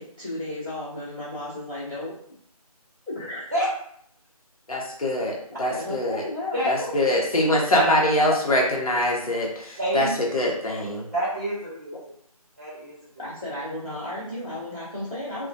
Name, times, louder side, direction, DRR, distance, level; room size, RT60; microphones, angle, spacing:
voice 1, 0.0-2.1 3.1-3.5 5.7-6.9 13.2-15.5, left 1 dB, ahead, -33 dB, 0.7 m, -34 dB
voice 2, 4.7-6.2 6.7-11.1, left 1 dB, 65° left, -2 dB, 0.8 m, -24 dB
voice 3, 9.8-10.1 11.1-11.9 12.6-13.6 13.9-14.4, equal, 25° right, -8 dB, 0.9 m, -28 dB
2.2 x 2.2 x 2.6 m, 0.66 s
figure-of-eight pair, 175°, 19 cm